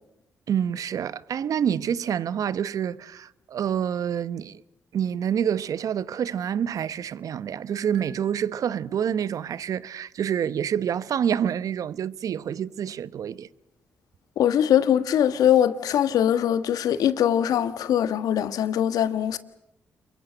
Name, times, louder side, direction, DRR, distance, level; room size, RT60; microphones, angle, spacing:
voice 1, 0.5-4.6 4.9-13.5, right 8 dB, 65° right, 0.9 m, -27 dB
sound 1, 7.9-9.5, right 6 dB, 90° right, 2.6 m, -54 dB
voice 2, 14.4-19.4, left 10 dB, 75° left, 1.4 m, -22 dB
28.0 x 23.0 x 7.8 m
hypercardioid pair, 45°, 6 cm